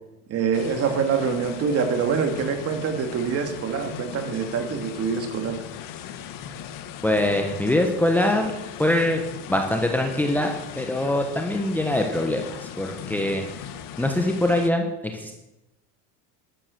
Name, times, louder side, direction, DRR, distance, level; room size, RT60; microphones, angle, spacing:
voice 1, 0.3-5.6, right 6 dB, 30° right, 6 dB, 2.1 m, -25 dB
sound 1, 0.5-14.7, left 9 dB, 45° left, 1.6 m, -38 dB
voice 2, 7.0-9.2 9.5-13.7 14.0-14.9 15.1-15.3, left 1 dB, 5° left, 3 dB, 1.2 m, -23 dB
12.5 x 12.5 x 6.9 m, 0.95 s
supercardioid pair, 145°, 47 cm